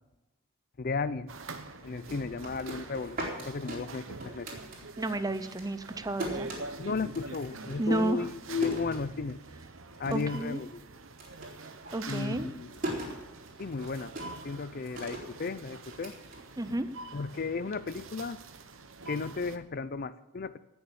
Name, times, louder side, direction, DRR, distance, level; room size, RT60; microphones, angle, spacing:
voice 1, 0.8-1.3 1.8-4.5 6.8-9.4 10.0-10.8 12.1-12.7 13.6-14.1 14.4-16.2 17.1-18.4 19.1-20.6, left 4 dB, 45° left, 15 dB, 0.5 m, -34 dB
sound 1, 1.3-19.6, right 3 dB, 70° right, 1.1 m, -46 dB
sound 2, 2.2-5.2 5.4-9.6 9.9-10.5 10.8-17.0, right 1 dB, 40° right, 4.2 m, -40 dB
voice 2, 5.0-6.5 7.8-8.3 10.1-10.6 11.9-12.5 16.6-16.9, right 2 dB, 15° right, 12 dB, 0.6 m, -31 dB
18.0 x 7.1 x 7.0 m, 1.0 s
head